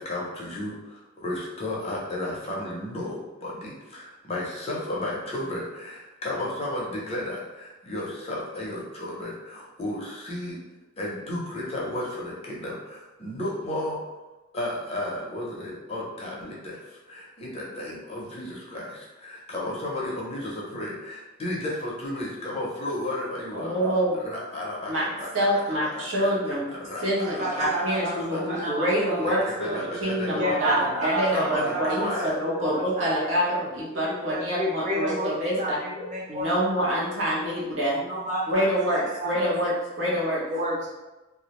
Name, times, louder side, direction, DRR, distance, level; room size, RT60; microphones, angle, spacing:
voice 1, 0.0-10.6 11.0-14.0 14.5-23.7 24.2-25.4 25.9-26.3 26.7-28.7 29.1-30.9 31.3-32.3, left 1 dB, 30° left, -4 dB, 0.6 m, -33 dB
voice 2, 23.5-24.2 24.9-26.7 27.0-35.8 36.3-38.0 38.5-40.4, equal, 80° right, -6 dB, 0.9 m, -26 dB
voice 3, 27.1-30.0 30.3-33.5 33.9-36.9 38.1-39.5 40.5-40.9, right 1 dB, 40° right, -5 dB, 0.7 m, -31 dB
2.3 x 2.0 x 2.9 m, 1.1 s
head